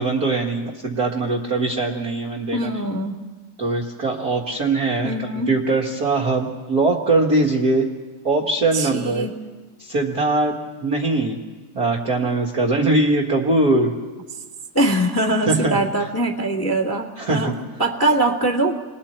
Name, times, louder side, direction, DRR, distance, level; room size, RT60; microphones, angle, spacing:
voice 1, 0.0-2.7 3.6-5.1 5.5-7.9 8.2-9.3 9.8-10.5 10.8-11.4 11.7-13.9 15.5-15.8 17.2-17.5, right 2 dB, 40° right, -4 dB, 1.6 m, -21 dB
voice 2, 2.5-3.2 5.0-5.5 8.7-9.4 14.7-18.8, right 1 dB, 10° left, -4 dB, 1.5 m, -22 dB
29.5 x 21.0 x 4.4 m, 1.3 s
omnidirectional pair, 3.4 m